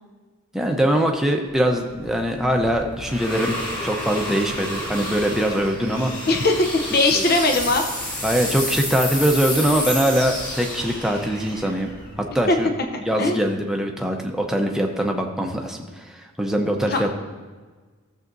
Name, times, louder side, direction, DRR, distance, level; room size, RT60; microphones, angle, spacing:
voice 1, 0.5-3.5 3.8-6.1 7.1-7.2 8.2-11.9 12.3-12.7 13.0-17.1, equal, ahead, 2 dB, 0.7 m, -22 dB
sound 1, 1.6-12.8, left 1 dB, 20° left, 2.9 m, -30 dB
voice 2, 6.3-7.8 12.5-12.6 13.2-13.4 16.9-17.1, left 2 dB, 45° left, 4 dB, 0.7 m, -19 dB
15.0 x 7.3 x 2.6 m, 1.4 s
head